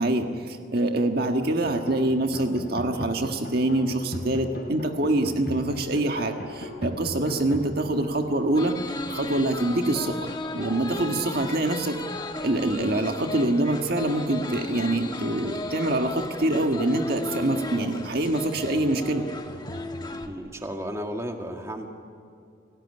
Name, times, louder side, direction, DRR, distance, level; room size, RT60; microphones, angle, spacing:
voice 1, 0.0-10.3 10.5-19.2, right 1 dB, 50° right, 5 dB, 1.6 m, -25 dB
sound 1, 1.4-12.8 13.1-13.5 13.8-20.4, equal, 50° left, 3.4 m, -41 dB
sound 2, 8.5-20.3, left 2 dB, 20° left, 1.4 m, -35 dB
voice 2, 20.2-21.9, equal, 15° right, 3 dB, 1.9 m, -33 dB
30.0 x 18.0 x 9.9 m, 2.5 s
head